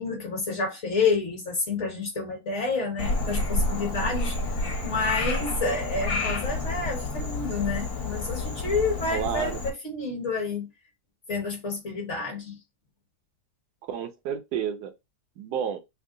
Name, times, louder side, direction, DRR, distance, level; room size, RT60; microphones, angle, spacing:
voice 1, 0.0-4.3 4.8-10.7 11.3-12.6, left 4 dB, 45° left, 1.4 m, -29 dB
Frog, 3.0-9.7, left 2 dB, 65° left, 1.4 m, -29 dB
voice 2, 9.1-9.6 13.9-14.9 15.4-15.8, right 8 dB, 75° right, 1.1 m, -30 dB
3.6 x 2.1 x 3.7 m
omnidirectional pair, 1.8 m